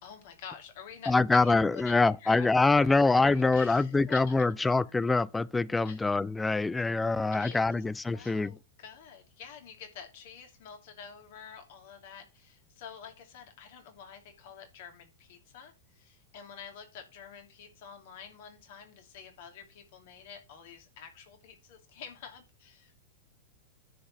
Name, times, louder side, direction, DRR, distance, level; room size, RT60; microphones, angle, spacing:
voice 1, 0.0-1.9 2.2-2.9 3.2-4.5 5.8-6.0 7.3-7.8 8.1-23.1, left 7 dB, 50° left, 2.6 m, -48 dB
voice 2, 1.1-8.5, left 3 dB, 10° left, 0.5 m, -25 dB
10.0 x 4.5 x 5.8 m
figure-of-eight pair, 90°, 0 cm